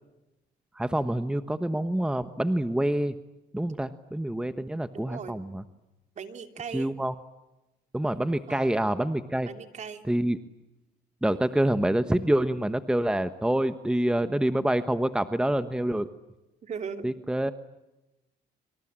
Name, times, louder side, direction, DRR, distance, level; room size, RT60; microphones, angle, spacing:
voice 1, 0.7-3.2 3.5-5.6 6.7-7.1 7.9-9.5 10.1-10.4 11.2-16.1 17.0-17.5, right 1 dB, 5° right, 11 dB, 1.2 m, -26 dB
voice 2, 4.9-5.4 6.2-6.9 8.5-8.7 9.5-10.0 16.6-17.1, right 6 dB, 45° right, 7 dB, 3.1 m, -38 dB
26.5 x 25.5 x 8.9 m, 1.0 s
cardioid pair, 110°, 17 cm